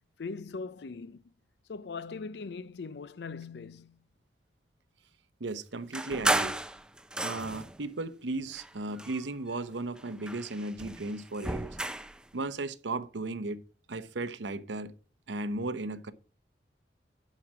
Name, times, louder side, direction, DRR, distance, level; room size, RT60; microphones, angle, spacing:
voice 1, 0.2-1.2 1.7-4.0, left 4 dB, 70° left, 0.5 m, -40 dB
voice 2, 5.4-6.6 7.2-11.8 12.3-13.6 13.9-14.9 15.3-16.1, right 2 dB, 90° right, 0.8 m, -35 dB
sound 1, 5.9-7.8 8.5-9.6 10.0-12.2, right 1 dB, 5° right, 0.5 m, -33 dB
11.5 x 5.0 x 6.0 m
head